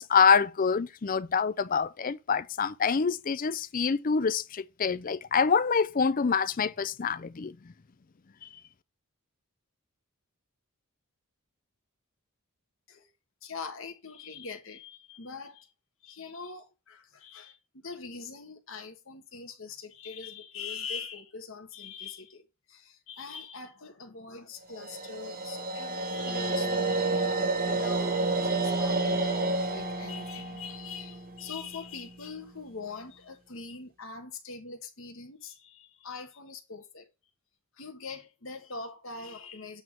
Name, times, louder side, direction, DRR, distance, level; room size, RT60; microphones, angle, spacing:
voice 1, 0.0-7.6, left 5 dB, 40° left, 0.5 m, -26 dB
voice 2, 13.4-15.7 16.0-22.4 22.7-37.1 37.8-39.8, left 5 dB, 60° left, 1.3 m, -43 dB
sound 1, 24.7-31.9, right 2 dB, 40° right, 1.1 m, -30 dB
8.2 x 3.6 x 6.0 m
head